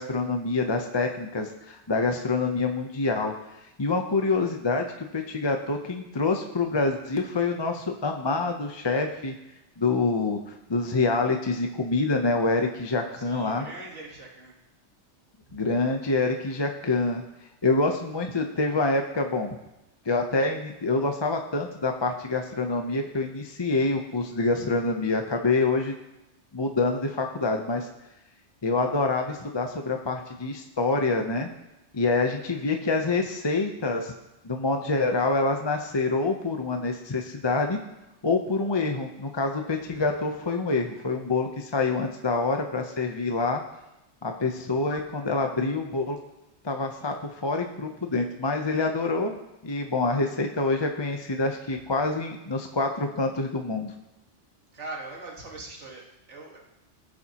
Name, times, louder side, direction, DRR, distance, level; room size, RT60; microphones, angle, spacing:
voice 1, 0.0-3.3 3.8-9.3 9.8-13.7 15.5-17.2 17.6-19.5 20.1-25.9 26.5-27.9 28.6-31.5 31.9-34.1 34.4-37.8 38.2-43.6 44.2-46.2 46.6-47.2 47.4-49.3 49.6-53.9, left 3 dB, 25° left, 3 dB, 0.7 m, -26 dB
voice 2, 13.1-14.5 51.9-52.0 54.7-56.6, right 2 dB, 80° right, -2 dB, 2.1 m, -41 dB
18.0 x 7.0 x 2.9 m, 0.95 s
omnidirectional pair, 1.2 m